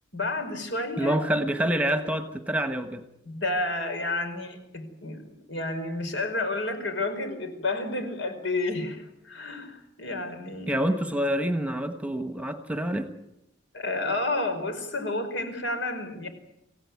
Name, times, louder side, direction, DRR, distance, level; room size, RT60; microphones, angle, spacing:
voice 1, 0.1-1.2 3.2-10.8 13.7-16.3, left 2 dB, 75° left, 7 dB, 5.0 m, -30 dB
voice 2, 1.0-3.0 10.7-13.1, right 1 dB, 5° right, 8 dB, 1.2 m, -27 dB
26.0 x 16.5 x 9.5 m, 0.90 s
head